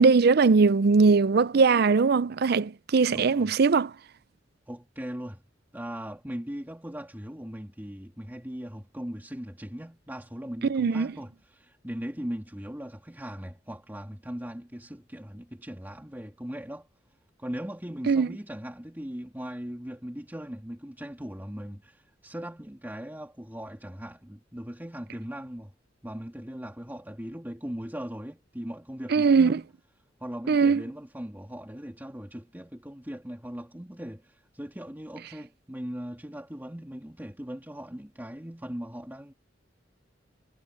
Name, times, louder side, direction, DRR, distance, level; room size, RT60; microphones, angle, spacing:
voice 1, 0.0-3.9 10.7-11.1 18.1-18.3 29.1-29.6 30.5-30.8, right 4 dB, 60° right, 0.5 m, -20 dB
voice 2, 3.1-3.5 4.7-5.4 5.7-16.9 17.4-25.7 26.0-29.7 30.2-39.3, equal, 10° right, 2.5 m, -39 dB
head